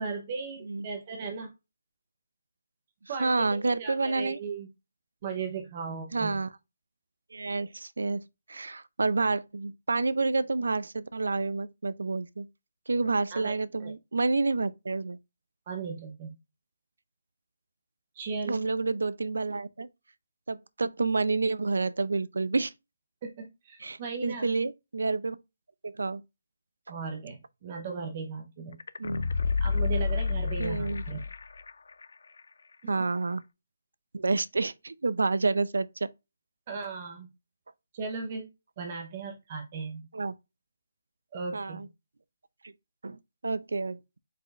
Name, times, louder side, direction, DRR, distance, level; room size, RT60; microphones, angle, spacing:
voice 1, 0.0-1.5 3.1-4.7 5.2-6.4 13.3-13.9 15.7-16.3 18.2-18.6 23.2-24.5 26.9-28.8 29.6-31.2 32.8-32.9 36.7-37.3 37.9-38.5 38.8-40.1 41.3-41.8, right 5 dB, 20° right, 0.8 m, -37 dB
voice 2, 3.2-4.4 6.1-6.5 7.3-8.2 8.5-12.5 12.9-15.2 18.5-19.9 20.5-22.7 23.8-25.4 25.8-26.2 29.0-29.2 30.6-31.0 32.9-33.4 34.1-36.1 40.1-40.3 41.5-41.9 42.6-42.7 43.0-44.0, right 3 dB, 80° right, 0.5 m, -29 dB
sound 1, 28.8-31.7 32.0-32.1, left 4 dB, 60° left, 0.4 m, -29 dB
5.0 x 4.3 x 2.4 m
hypercardioid pair, 175°, 0 cm